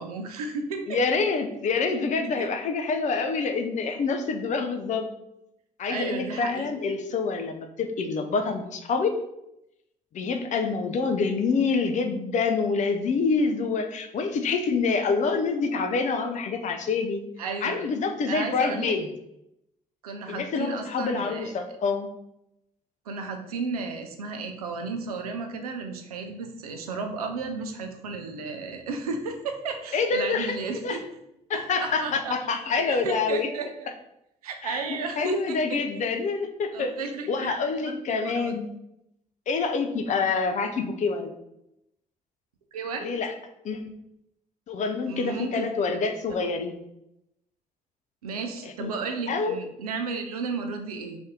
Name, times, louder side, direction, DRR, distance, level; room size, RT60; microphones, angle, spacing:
voice 1, 0.0-1.0 2.4-2.5 5.9-6.7 17.4-17.8 18.3-19.0 20.0-21.5 23.1-31.0 31.5-32.4 32.7-33.9 34.4-35.8 36.7-38.5 42.7-43.2 45.1-45.7 46.4-46.5 48.2-51.2, right 4 dB, 80° right, 5 dB, 0.4 m, -33 dB
voice 2, 0.9-5.1 5.8-9.2 10.1-17.2 17.6-19.1 20.3-22.1 29.9-31.0 31.5-33.5 34.6-34.8 35.2-36.9 37.3-38.7 39.5-41.3 43.0-43.3 43.6-43.9 44.7-46.8 48.6-48.9 49.3-49.6, left 4 dB, 40° left, 6 dB, 0.5 m, -26 dB
3.3 x 2.7 x 3.5 m, 0.83 s
figure-of-eight pair, 45°, 19 cm